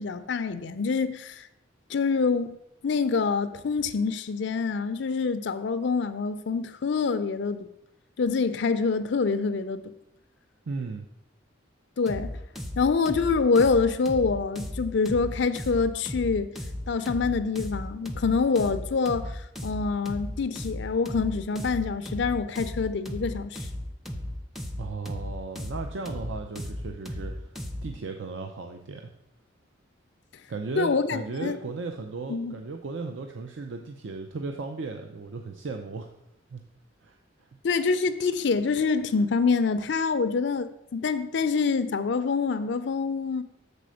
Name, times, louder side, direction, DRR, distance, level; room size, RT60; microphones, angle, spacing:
voice 1, 0.0-1.5 1.9-2.6 2.8-7.7 8.2-9.9 12.0-12.3 12.8-16.5 16.9-23.7 30.8-31.6 32.3-32.6 37.6-43.4, left 4 dB, 60° left, 0.4 m, -26 dB
voice 2, 10.7-11.0 24.8-27.6 27.8-29.1 30.5-36.1 36.5-36.6 37.0-37.2 37.5-37.6, right 4 dB, 65° right, 0.5 m, -36 dB
sound 1, 12.1-28.0, left 1 dB, ahead, 0.5 m, -36 dB
6.8 x 4.2 x 6.3 m
head